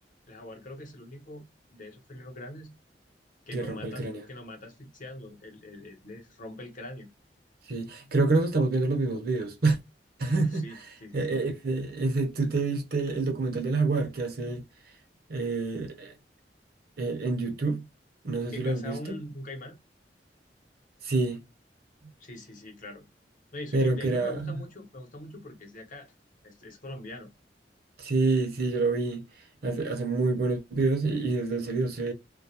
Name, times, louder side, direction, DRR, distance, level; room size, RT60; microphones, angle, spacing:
voice 1, 0.3-1.4 1.7-2.7 3.5-7.1 10.3-11.4 18.5-19.8 22.2-23.1 23.5-26.1 26.4-27.3, left 1 dB, 50° left, 0.8 m, -43 dB
voice 2, 3.5-4.2 7.7-9.8 10.2-10.6 11.1-14.6 15.3-16.1 17.0-17.8 18.2-19.2 21.0-21.4 23.7-24.5 28.0-29.2 29.6-32.1, right 3 dB, 60° right, 0.7 m, -27 dB
2.3 x 2.0 x 2.7 m
head